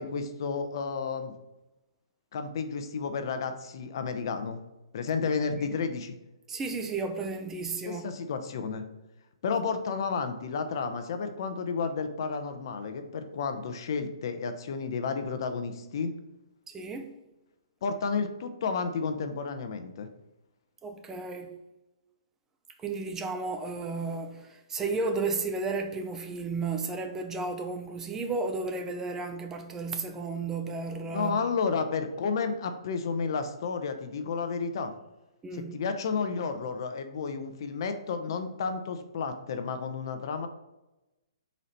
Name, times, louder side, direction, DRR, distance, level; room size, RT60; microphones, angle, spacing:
voice 1, 0.0-1.3 2.3-4.6 4.9-6.1 7.9-8.8 9.4-16.1 17.8-20.1 31.1-34.9 35.7-40.5, left 5 dB, 55° left, 0.5 m, -31 dB
voice 2, 6.5-8.0 16.7-17.1 20.8-21.5 22.8-31.4 35.4-35.7, right 3 dB, 15° right, 0.5 m, -33 dB
4.0 x 3.1 x 4.2 m
figure-of-eight pair, 125°, 3 cm